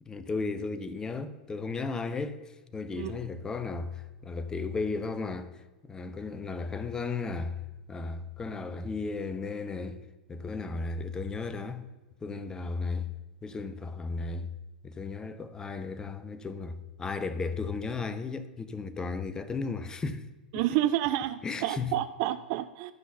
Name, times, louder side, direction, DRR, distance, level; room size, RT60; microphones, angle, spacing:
voice 1, 0.0-7.6 7.9-10.0 10.3-11.9 12.2-13.1 13.4-14.5 14.8-20.3 20.5-20.6 21.4-21.9, left 4 dB, 15° left, 0.6 m, -35 dB
voice 2, 20.5-22.9, right 13 dB, 45° right, 0.3 m, -29 dB
12.5 x 5.7 x 5.4 m
figure-of-eight pair, 95°, 5 cm